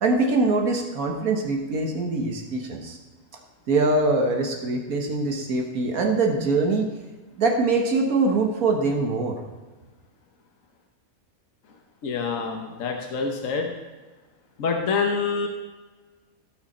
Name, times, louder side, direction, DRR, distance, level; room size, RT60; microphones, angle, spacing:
voice 1, 0.0-3.0 3.7-6.9 7.3-9.4, right 3 dB, 70° right, 2 dB, 1.7 m, -23 dB
voice 2, 12.0-13.7 14.6-15.5, left 5 dB, 60° left, 2 dB, 1.4 m, -26 dB
17.0 x 6.4 x 4.3 m, 1.3 s
omnidirectional pair, 1.6 m